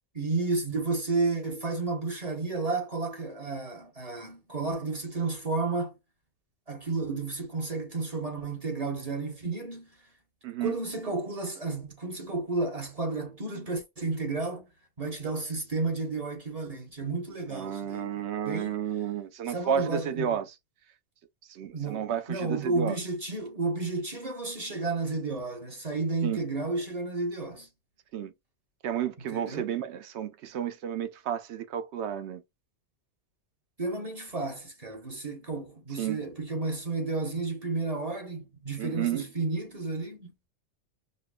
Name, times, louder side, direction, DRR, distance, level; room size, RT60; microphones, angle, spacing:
voice 1, 0.1-5.9 6.7-9.9 10.6-14.7 15.0-18.8 19.5-20.4 21.7-27.7 29.3-29.6 33.8-40.5, right 3 dB, 35° right, 0.9 m, -32 dB
voice 2, 10.4-10.8 17.5-20.5 21.5-23.0 26.2-26.4 28.1-28.3 28.8-32.4 36.0-36.2 38.8-39.3, right 9 dB, 75° right, 0.9 m, -32 dB
5.2 x 2.0 x 2.2 m
omnidirectional pair, 1.2 m